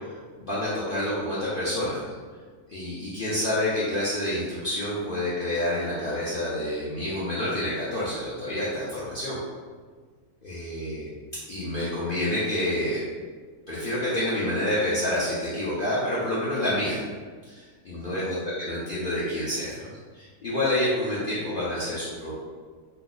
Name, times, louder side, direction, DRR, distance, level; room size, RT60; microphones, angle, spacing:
voice 1, 0.4-2.0 2.7-9.4 10.4-11.1 11.5-13.0 13.7-17.0 17.5-22.4, left 1 dB, 60° left, -8 dB, 0.5 m, -28 dB
2.8 x 2.0 x 3.7 m, 1.5 s
omnidirectional pair, 1.6 m